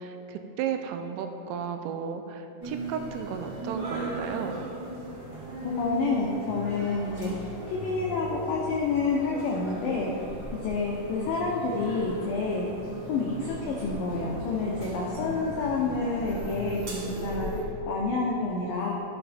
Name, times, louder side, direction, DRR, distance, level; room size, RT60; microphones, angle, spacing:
voice 1, 0.0-4.6, right 7 dB, 85° right, 6 dB, 2.9 m, -34 dB
sound 1, 2.6-17.6, equal, 35° right, 2.2 m, -38 dB
voice 2, 5.6-10.1 10.6-12.7 13.1-18.9, left 3 dB, 90° left, -3 dB, 1.9 m, -29 dB
14.0 x 7.1 x 3.4 m, 2.9 s
omnidirectional pair, 5.2 m